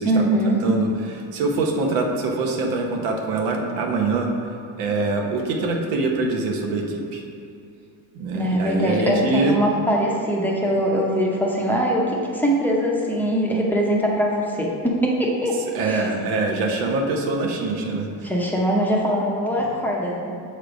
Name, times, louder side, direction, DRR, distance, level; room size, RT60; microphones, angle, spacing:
voice 1, 0.0-0.6 8.3-12.1 12.3-15.6 15.8-16.1 18.2-20.3, equal, 5° left, -3 dB, 0.7 m, -22 dB
voice 2, 0.6-4.3 4.8-7.2 8.1-9.6 15.7-18.3 19.6-19.7, right 3 dB, 85° right, 1 dB, 0.9 m, -24 dB
6.7 x 3.2 x 5.0 m, 2.6 s
cardioid pair, 140°, 34 cm